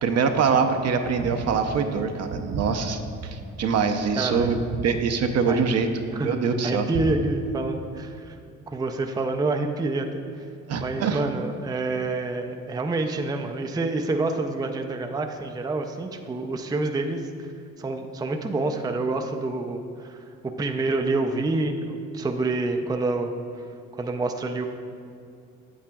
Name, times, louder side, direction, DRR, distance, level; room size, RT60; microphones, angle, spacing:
voice 1, 0.0-4.6 4.8-5.9 6.2-6.9 10.7-11.2, right 5 dB, 60° right, 6 dB, 0.6 m, -24 dB
voice 2, 4.2-4.5 5.5-5.7 6.2-8.4 8.7-10.2 10.8-17.3 17.8-23.3 23.9-24.7, right 2 dB, 15° right, 5 dB, 0.4 m, -27 dB
8.6 x 8.3 x 2.3 m, 2.5 s
cardioid pair, 90°, 30 cm